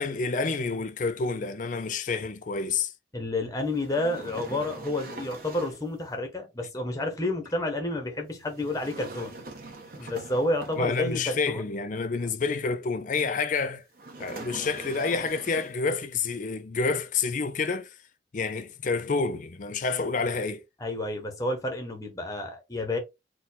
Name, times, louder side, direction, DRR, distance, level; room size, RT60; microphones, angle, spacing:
voice 1, 0.0-2.9 10.0-10.1 10.8-13.8 14.2-17.9 18.3-20.6, left 4 dB, 40° left, 0.4 m, -28 dB
voice 2, 3.1-9.3 9.9-11.7 20.8-23.0, left 1 dB, 15° left, 0.8 m, -30 dB
sound 1, 3.7-5.9 8.5-11.2 13.9-15.9, right 2 dB, 45° right, 1.2 m, -42 dB
4.3 x 2.3 x 4.0 m
head